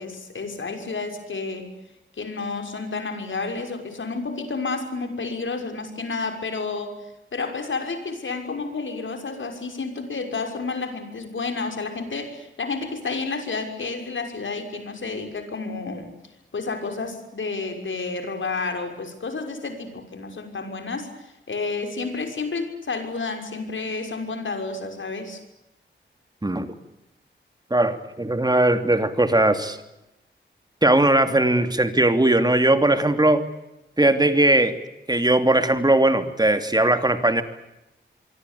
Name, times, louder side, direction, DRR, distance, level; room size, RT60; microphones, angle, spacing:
voice 1, 0.0-1.7 2.2-16.1 16.5-25.4, left 4 dB, 70° left, 6 dB, 6.1 m, -30 dB
voice 2, 27.7-29.8 30.8-33.4 34.0-34.8 35.1-37.4, right 1 dB, 20° right, 8 dB, 3.0 m, -19 dB
25.5 x 24.5 x 8.6 m, 0.92 s
wide cardioid pair, 100°, 21 cm